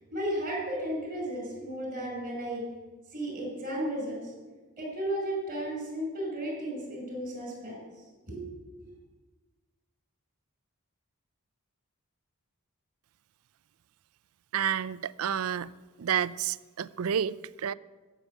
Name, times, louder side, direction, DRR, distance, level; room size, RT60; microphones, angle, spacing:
voice 1, 0.1-2.6 3.1-4.3 4.8-7.9 8.3-8.9, right 1 dB, 40° right, 5.9 m, -34 dB
voice 2, 14.5-15.7 16.0-17.7, right 8 dB, 75° right, 0.4 m, -30 dB
14.5 x 6.8 x 9.1 m
head